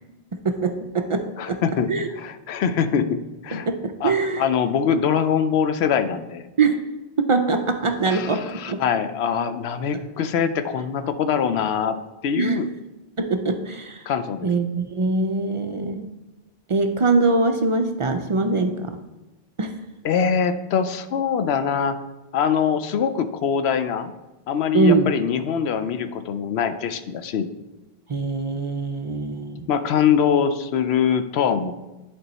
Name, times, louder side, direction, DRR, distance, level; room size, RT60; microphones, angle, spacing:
voice 1, 0.3-1.6 1.9-2.1 3.7-4.4 6.6-6.8 7.2-8.8 12.3-12.6 13.2-14.0 14.4-16.1 16.7-18.9 19.6-19.8 24.7-25.1 28.1-29.7, right 3 dB, 50° right, 6 dB, 0.4 m, -23 dB
voice 2, 1.4-3.7 4.0-6.5 8.0-12.0 12.2-12.7 14.1-14.5 20.0-22.0 22.3-24.1 24.5-27.5 29.7-31.7, left 7 dB, 85° left, 10 dB, 0.8 m, -23 dB
11.0 x 3.6 x 4.1 m, 1.1 s
omnidirectional pair, 1.0 m